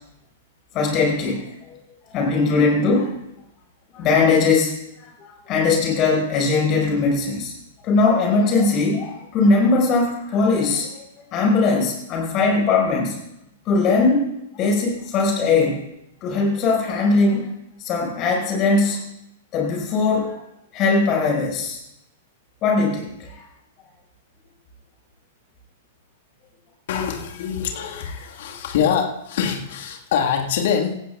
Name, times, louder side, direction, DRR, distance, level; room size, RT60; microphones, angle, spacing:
voice 1, 0.7-1.5 2.1-3.1 3.9-7.5 7.8-11.0 11.3-13.2 13.7-14.2 14.5-15.8 16.2-17.5 17.8-19.0 19.5-20.4 20.7-21.8 22.6-23.4, left 3 dB, 35° left, -1 dB, 5.5 m, -20 dB
voice 2, 26.9-30.9, left 7 dB, 55° left, 2 dB, 1.8 m, -24 dB
18.0 x 15.0 x 2.4 m, 0.81 s
figure-of-eight pair, 100°, 0 cm